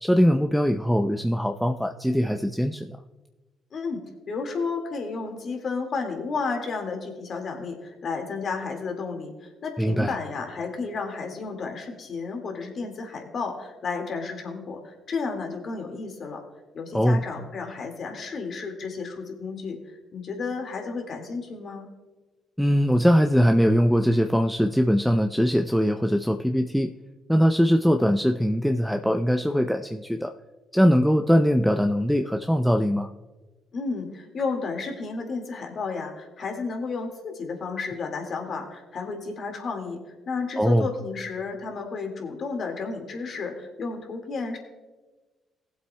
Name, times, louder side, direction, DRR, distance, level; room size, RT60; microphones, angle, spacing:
voice 1, 0.0-3.0 9.8-10.1 16.9-17.2 22.6-26.9 27.3-30.3 30.7-33.1 40.6-40.9, equal, ahead, 5 dB, 0.6 m, -21 dB
voice 2, 4.3-16.4 16.7-21.9 33.7-40.0 40.3-44.6, left 4 dB, 55° left, 3 dB, 2.0 m, -32 dB
19.0 x 7.7 x 2.3 m, 1.2 s
hypercardioid pair, 50°, 0 cm